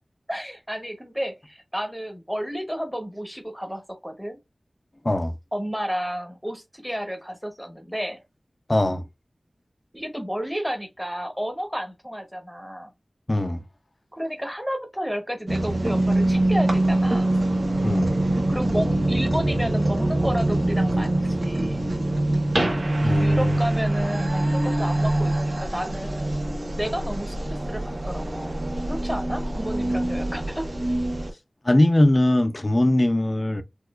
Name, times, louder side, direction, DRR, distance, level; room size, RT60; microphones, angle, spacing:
voice 1, 0.3-4.4 5.5-8.2 9.9-12.9 14.2-17.3 18.5-21.8 23.0-26.3 26.8-28.6 28.9-30.7, equal, ahead, 0.8 m, -31 dB
voice 2, 8.7-9.0 13.3-13.6 17.8-18.1 23.0-23.6 31.6-33.6, left 1 dB, 35° left, 0.4 m, -21 dB
sound 1, 15.5-31.3, right 1 dB, 50° right, 0.8 m, -24 dB
4.2 x 2.3 x 2.3 m
wide cardioid pair, 75°, 0 cm